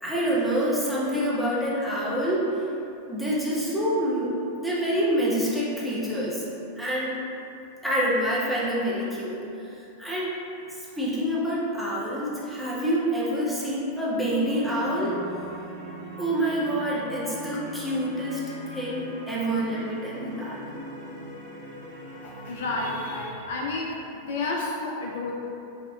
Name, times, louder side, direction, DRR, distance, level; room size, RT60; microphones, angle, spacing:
voice 1, 0.0-2.5 3.1-6.4 6.8-7.2 7.8-10.3 10.7-15.2 16.2-20.6, equal, ahead, -8 dB, 0.8 m, -27 dB
sound 1, 14.5-23.2, equal, 70° right, 0.9 m, -41 dB
voice 2, 22.2-25.3, left 2 dB, 55° left, -2 dB, 0.4 m, -31 dB
4.7 x 2.5 x 2.3 m, 2.8 s
figure-of-eight pair, 90°, 0 cm